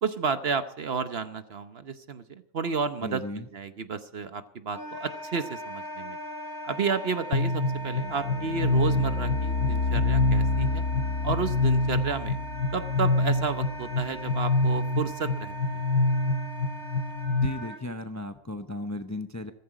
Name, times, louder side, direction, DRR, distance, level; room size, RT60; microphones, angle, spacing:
voice 1, 0.0-6.2 6.6-10.8 11.2-12.4 12.7-15.8, right 5 dB, 50° right, 11 dB, 1.0 m, -31 dB
voice 2, 3.0-3.5 17.4-19.5, left 2 dB, 15° left, 8 dB, 0.7 m, -35 dB
Wind instrument woodwind instrument, 4.7-17.8, right 1 dB, 15° right, 6.5 m, -40 dB
sound 1, 7.3-17.5, left 2 dB, 70° left, 1.1 m, -26 dB
15.5 x 14.5 x 4.9 m, 0.65 s
omnidirectional pair, 1.4 m